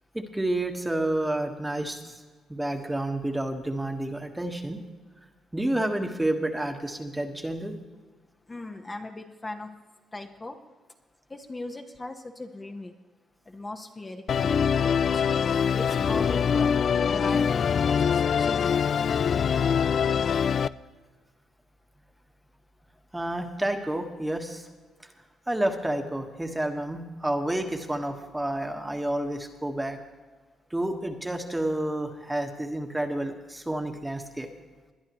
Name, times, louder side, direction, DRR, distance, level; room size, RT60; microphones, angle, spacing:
voice 1, 0.1-2.2 2.5-4.8 5.5-7.7 23.1-24.7 25.5-30.0 30.7-34.5, right 1 dB, 10° right, 4 dB, 1.5 m, -30 dB
voice 2, 8.5-9.7 10.1-10.6 11.3-12.9 13.5-15.3 15.7-18.8, left 2 dB, 25° left, 4 dB, 1.1 m, -39 dB
Musical instrument, 14.3-20.7, left 7 dB, 55° left, 0.3 m, -24 dB
21.0 x 10.5 x 3.1 m, 1.4 s
supercardioid pair, 70°, 0 cm